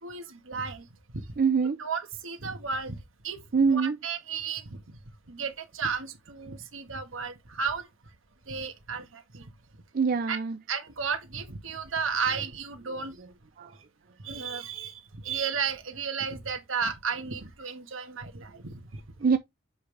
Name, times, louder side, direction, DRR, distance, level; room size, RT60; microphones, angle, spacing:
voice 1, 0.0-0.8 1.1-1.2 1.8-3.0 3.2-3.4 3.7-4.8 5.3-7.9 8.5-9.5 10.3-10.4 10.7-13.1 14.2-19.0, right 5 dB, 80° right, 1.5 m, -33 dB
voice 2, 1.4-1.8 3.5-4.0 9.9-10.6 13.6-13.8 19.2-19.4, right 5 dB, 45° right, 0.5 m, -24 dB
7.1 x 5.2 x 3.3 m
head